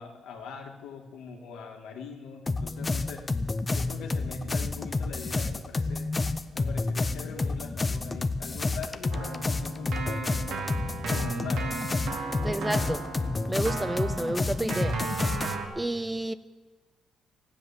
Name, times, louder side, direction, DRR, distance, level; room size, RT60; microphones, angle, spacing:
voice 1, 0.0-3.2 3.7-6.1 6.5-10.7 11.1-11.7, left 5 dB, 90° left, 2.0 m, -41 dB
sound 1, 2.5-15.5, left 3 dB, 25° left, 0.7 m, -30 dB
Keyboard (musical), 9.1-15.7, right 4 dB, 80° right, 2.3 m, -35 dB
voice 2, 12.4-13.1 13.5-15.4 15.8-16.3, right 1 dB, 15° right, 0.5 m, -30 dB
14.5 x 10.5 x 7.3 m
cardioid pair, 90°, 0 cm